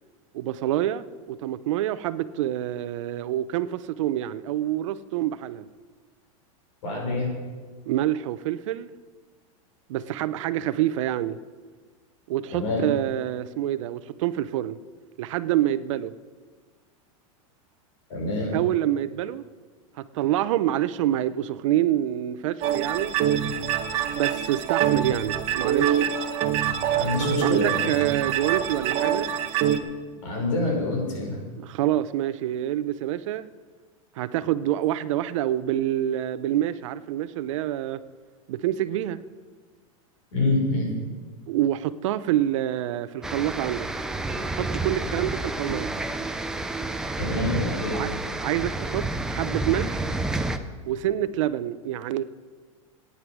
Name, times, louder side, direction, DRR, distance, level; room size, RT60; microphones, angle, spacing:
voice 1, 0.3-5.7 7.9-8.9 9.9-11.4 12.3-14.8 15.2-16.1 18.5-19.4 20.0-23.1 24.1-26.0 27.4-29.3 31.6-33.5 34.2-38.0 38.5-39.2 41.5-43.9 44.5-45.9 47.9-48.1 48.4-50.1 50.9-52.2, right 12 dB, 60° right, 14 dB, 0.7 m, -27 dB
voice 2, 6.8-7.3 12.5-12.9 18.1-18.5 26.9-27.9 30.2-31.4 40.3-40.9 47.2-48.0, left 2 dB, 65° left, -1 dB, 5.6 m, -26 dB
sound 1, 22.6-29.8, right 10 dB, 35° right, 1.0 m, -25 dB
sound 2, 43.2-50.6, right 2 dB, 5° right, 0.5 m, -30 dB
15.5 x 9.6 x 6.2 m, 1.5 s
supercardioid pair, 160°, 18 cm